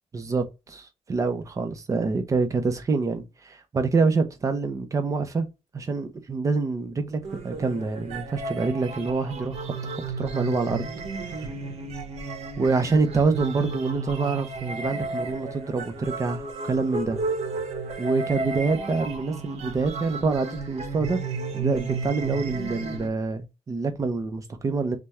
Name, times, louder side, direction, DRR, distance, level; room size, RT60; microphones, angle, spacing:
voice 1, 0.1-5.5 5.7-10.8 11.3-11.4 12.6-17.2 18.0-21.2 21.5-25.0, right 4 dB, 25° right, 0.6 m, -26 dB
sound 1, 7.2-23.1, right 3 dB, 65° right, 0.9 m, -33 dB
5.5 x 2.2 x 3.0 m
wide cardioid pair, 175°, 12 cm